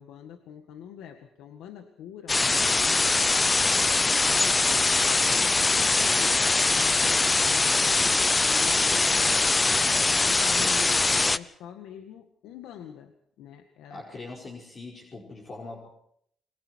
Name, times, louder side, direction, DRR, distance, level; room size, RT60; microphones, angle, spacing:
voice 1, 0.0-8.1 8.4-14.0, left 8 dB, 90° left, 6 dB, 1.9 m, -44 dB
sound 1, 2.3-11.4, left 3 dB, 25° left, 0.8 m, -22 dB
voice 2, 13.9-15.9, left 3 dB, 40° left, -1 dB, 5.1 m, -41 dB
29.5 x 23.0 x 4.7 m, 0.69 s
cardioid pair, 90°, 0 cm